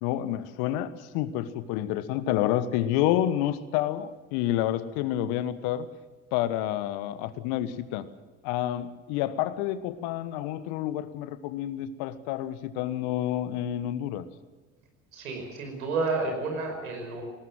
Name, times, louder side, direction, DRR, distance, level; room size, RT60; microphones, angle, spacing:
voice 1, 0.0-5.9 6.3-8.1 8.4-14.3, left 12 dB, 65° left, 13 dB, 1.4 m, -29 dB
voice 2, 15.1-17.2, right 3 dB, 85° right, 3 dB, 5.5 m, -30 dB
19.5 x 19.0 x 7.6 m, 1.3 s
hypercardioid pair, 60°, 41 cm